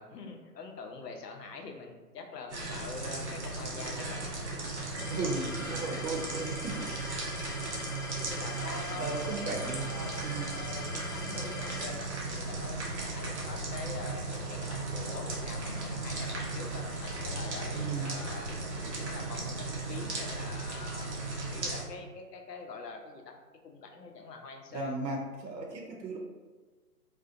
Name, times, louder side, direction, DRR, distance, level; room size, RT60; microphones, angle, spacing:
voice 1, 0.0-4.7 8.2-9.2 10.5-18.5 18.9-21.1 21.5-23.4 23.6-25.2, left 4 dB, 75° left, 3 dB, 0.6 m, -44 dB
sound 1, 2.5-21.8, right 3 dB, 45° right, 0.5 m, -36 dB
sound 2, 5.0-11.8, left 3 dB, 45° left, 1.0 m, -43 dB
voice 2, 5.1-6.9 9.0-10.6 17.7-18.1 24.7-26.2, right 3 dB, 90° right, 1 dB, 0.6 m, -36 dB
2.4 x 2.1 x 2.4 m, 1.3 s
hypercardioid pair, 150°, 49 cm